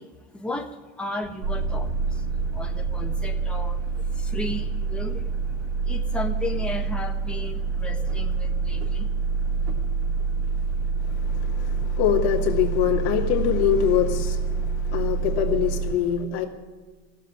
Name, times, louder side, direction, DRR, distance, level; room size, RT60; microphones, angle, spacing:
voice 1, 0.0-3.8 4.1-5.3 5.8-9.1, left 1 dB, 5° left, 1.3 m, -35 dB
sound 1, 1.4-15.9, right 4 dB, 70° right, 3.2 m, -26 dB
voice 2, 11.0-16.5, left 10 dB, 85° left, 2.4 m, -24 dB
15.5 x 7.5 x 9.8 m
supercardioid pair, 125°, 32 cm